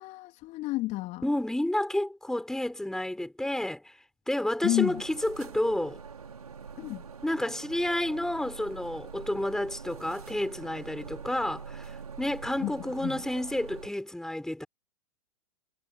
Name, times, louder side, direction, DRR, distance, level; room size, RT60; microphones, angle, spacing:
voice 1, 0.0-1.2 4.6-5.0 6.8-7.0 12.6-12.7 13.0-13.2, left 18 dB, 35° left, 3.1 m, -30 dB
voice 2, 1.2-3.9 4.3-6.0 7.2-14.7, left 1 dB, 5° left, 5.9 m, -30 dB
sound 1, 4.7-13.9, right 6 dB, 75° right, 4.9 m, -44 dB
figure-of-eight pair, 95°, 19 cm